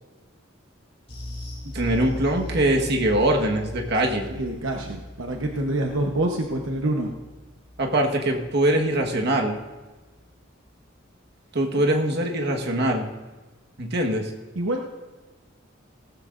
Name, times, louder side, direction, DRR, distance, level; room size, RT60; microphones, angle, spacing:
sound 1, 1.1-9.8 10.0-10.3 10.6-10.7, left 1 dB, 35° left, 3.5 m, -39 dB
voice 1, 1.7-4.3 7.8-9.6 11.5-13.1 13.8-14.3, right 1 dB, 55° right, 2 dB, 1.5 m, -22 dB
voice 2, 4.3-7.1 14.5-14.9, right 1 dB, 75° right, 1 dB, 1.0 m, -26 dB
17.5 x 14.0 x 2.6 m, 1.2 s
head